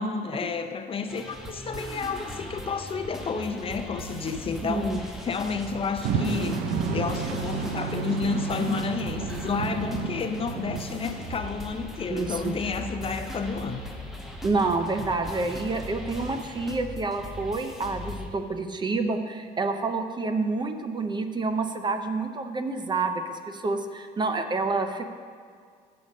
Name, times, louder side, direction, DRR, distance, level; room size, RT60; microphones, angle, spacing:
voice 1, 0.0-6.6 6.9-13.8, left 5 dB, 35° left, 8 dB, 0.5 m, -31 dB
sound 1, 1.1-18.3, equal, ahead, 1.1 m, -39 dB
voice 2, 4.6-5.0 12.1-12.5 14.4-25.1, right 3 dB, 25° right, 7 dB, 0.6 m, -28 dB
sound 2, 6.0-11.7, right 6 dB, 75° right, 0.7 m, -31 dB
8.4 x 6.7 x 5.2 m, 2.1 s
cardioid pair, 110°, 17 cm